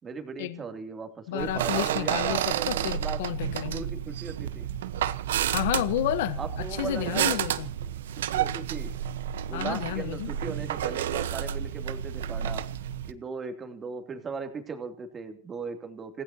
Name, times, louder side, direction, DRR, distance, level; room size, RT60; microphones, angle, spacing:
voice 1, 0.0-3.2 3.7-4.7 6.4-7.4 8.3-8.9 9.5-12.7 13.1-16.2, right 5 dB, 20° right, 2.9 m, -37 dB
voice 2, 1.3-3.9 5.5-7.7 9.5-10.3, left 14 dB, 70° left, 1.2 m, -31 dB
sound 1, 1.4-13.1, right 10 dB, 85° right, 1.1 m, -30 dB
28.5 x 16.0 x 2.9 m
supercardioid pair, 125°, 0 cm